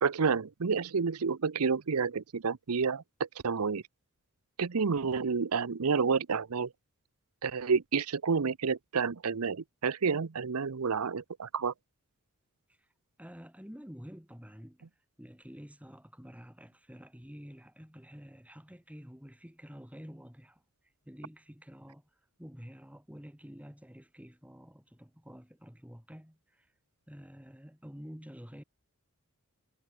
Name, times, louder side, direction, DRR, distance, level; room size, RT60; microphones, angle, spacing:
voice 1, 0.0-3.0 3.4-3.8 4.6-6.7 7.4-11.7, right 5 dB, 85° right, 0.7 m, -29 dB
voice 2, 13.2-14.8 15.2-20.6 21.1-22.1 22.4-26.7 27.1-28.6, equal, 5° right, 3.4 m, -49 dB
head